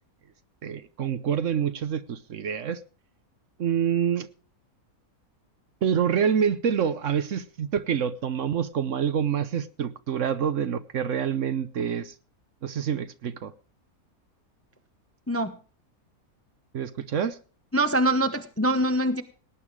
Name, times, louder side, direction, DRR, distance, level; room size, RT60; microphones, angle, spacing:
voice 1, 0.6-2.8 3.6-4.3 5.8-12.1 12.6-13.5 16.7-17.4, right 8 dB, 60° right, 1.1 m, -27 dB
voice 2, 17.7-19.2, right 1 dB, 15° left, 0.6 m, -24 dB
18.5 x 9.1 x 4.9 m
omnidirectional pair, 1.5 m